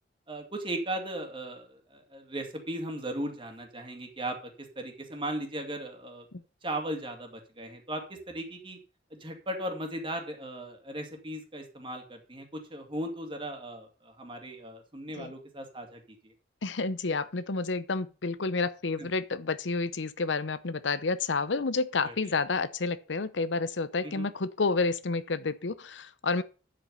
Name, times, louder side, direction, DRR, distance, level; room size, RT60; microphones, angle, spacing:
voice 1, 0.3-6.2 6.6-8.8 9.1-16.3 19.0-19.1 22.0-22.4 24.0-24.3, right 1 dB, 30° right, 2.4 m, -37 dB
voice 2, 16.6-26.4, left 3 dB, 85° left, 0.8 m, -30 dB
9.9 x 7.7 x 5.5 m
head